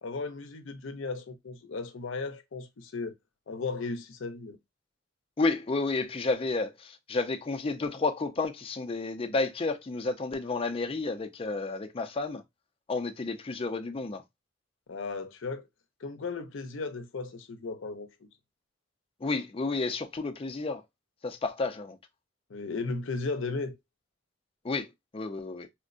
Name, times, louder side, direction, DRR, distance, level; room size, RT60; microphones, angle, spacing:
voice 1, 0.0-3.1 3.5-4.6 14.9-15.7 16.0-18.1 22.5-23.8, left 3 dB, 85° left, 0.6 m, -35 dB
voice 2, 5.4-12.4 12.9-14.2 19.2-20.8 21.2-22.0 24.6-25.7, left 3 dB, 30° left, 0.5 m, -31 dB
4.4 x 2.1 x 2.4 m
head